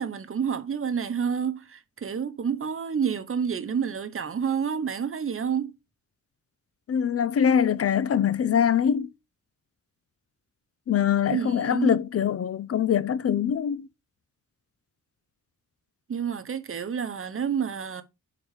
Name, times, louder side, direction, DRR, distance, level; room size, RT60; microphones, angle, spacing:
voice 1, 0.0-5.7 11.3-12.0 16.1-18.0, right 7 dB, 40° right, 0.8 m, -29 dB
voice 2, 6.9-9.1 10.9-13.9, left 8 dB, 50° left, 0.4 m, -23 dB
6.5 x 3.9 x 4.7 m
cardioid pair, 95°, 32 cm